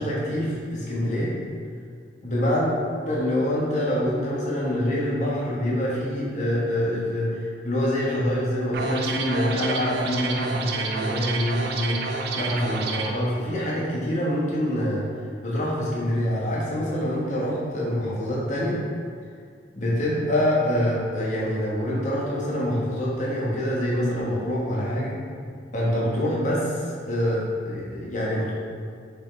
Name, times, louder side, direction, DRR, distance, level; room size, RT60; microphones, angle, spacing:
voice 1, 0.0-1.3 2.2-2.7 3.0-15.0 15.4-18.8 19.7-25.2 25.7-28.5, equal, 40° left, -6 dB, 1.3 m, -25 dB
sound 1, 8.7-13.1, right 4 dB, 55° right, 0.5 m, -29 dB
6.5 x 4.5 x 3.3 m, 2.2 s
head